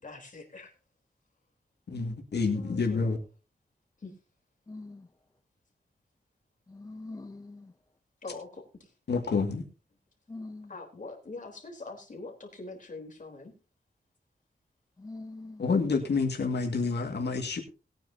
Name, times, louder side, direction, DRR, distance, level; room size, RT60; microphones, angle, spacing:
voice 1, 0.0-0.7 2.5-3.1 4.0-4.1 8.2-8.9 10.7-13.5, left 3 dB, 45° left, 3.7 m, -43 dB
voice 2, 1.9-3.2 9.1-9.6 15.6-17.6, left 4 dB, 75° left, 2.0 m, -28 dB
voice 3, 4.7-5.0 6.7-7.6 10.3-10.7 15.0-15.6, left 2 dB, 20° left, 0.6 m, -43 dB
20.0 x 9.1 x 2.7 m
wide cardioid pair, 115°, 18 cm